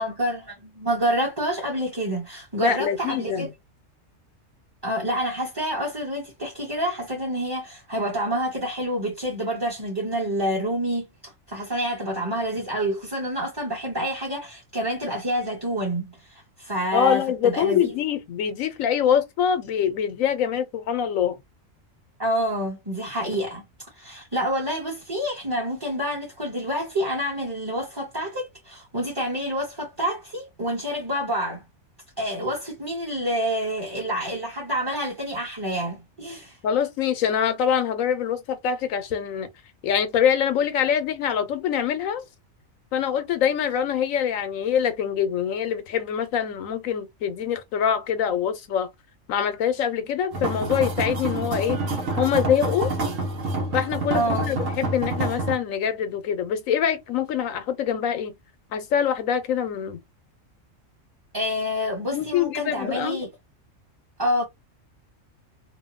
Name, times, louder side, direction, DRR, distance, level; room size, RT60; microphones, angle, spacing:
voice 1, 0.0-3.5 4.8-17.9 22.2-23.6 24.0-31.6 32.2-36.6 54.1-54.5 61.3-63.3 64.2-64.4, equal, 20° right, 0.9 m, -28 dB
voice 2, 2.6-3.5 16.9-21.4 36.6-39.5 39.8-42.2 42.9-48.9 49.3-51.8 52.2-52.9 53.7-58.3 58.7-60.0 62.1-63.2, left 8 dB, 85° left, 1.1 m, -24 dB
sound 1, 50.3-55.5, right 2 dB, 80° right, 1.4 m, -27 dB
3.0 x 2.2 x 2.5 m
omnidirectional pair, 1.3 m